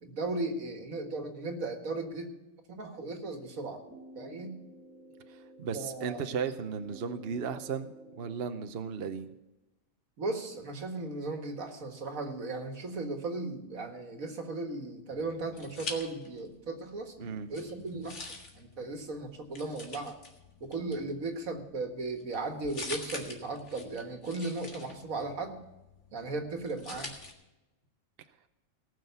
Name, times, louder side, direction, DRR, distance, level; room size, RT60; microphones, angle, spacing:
voice 1, 0.0-2.3 2.7-3.8 4.1-4.6 5.7-6.2 10.2-20.2 20.6-25.6 26.1-27.1, right 3 dB, 80° right, 5 dB, 2.1 m, -36 dB
sound 1, 3.8-8.8, right 1 dB, ahead, 2.5 m, -52 dB
voice 2, 5.3-9.3 17.2-17.5, right 6 dB, 50° right, 9 dB, 0.9 m, -35 dB
sound 2, 15.1-16.6 16.9-27.3, left 3 dB, 60° left, 2.1 m, -46 dB
18.5 x 6.5 x 6.8 m, 0.99 s
omnidirectional pair, 1.4 m